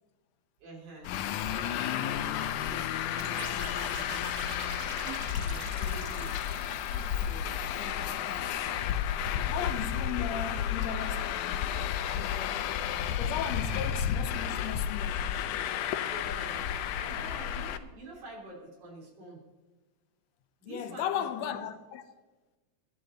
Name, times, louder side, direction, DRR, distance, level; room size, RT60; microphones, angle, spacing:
voice 1, 0.6-4.3 4.7-6.3 6.9-9.0 9.3-9.8 13.6-13.7 16.0-19.4 20.6-21.6, right 2 dB, 75° right, 4.8 m, -47 dB
Traffic noise roadway noise, 1.0-17.8, left 9 dB, 85° left, 2.3 m, -32 dB
sound 1, 3.2-8.0, right 6 dB, 50° right, 1.6 m, -46 dB
voice 2, 9.5-11.7 12.1-12.6 13.2-15.2 20.6-22.0, left 9 dB, 70° left, 1.9 m, -36 dB
24.0 x 12.0 x 3.9 m
omnidirectional pair, 3.6 m